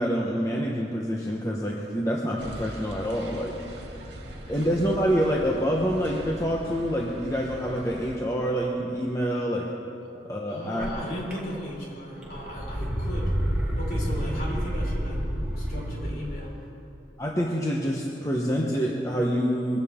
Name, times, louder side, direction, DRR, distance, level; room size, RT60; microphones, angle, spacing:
voice 1, 0.0-3.6 4.5-9.7 10.3-10.9 17.2-19.8, equal, 15° left, -2 dB, 1.1 m, -26 dB
sound 1, 2.4-8.2, right 1 dB, 70° right, 2.3 m, -41 dB
voice 2, 10.5-13.4 13.7-15.2 15.5-16.6, equal, 50° left, -4 dB, 4.9 m, -36 dB
sound 2, 10.8-10.9 11.3-11.9 12.2-16.1, equal, 5° right, 2.1 m, -29 dB
23.0 x 16.0 x 3.7 m, 2.8 s
head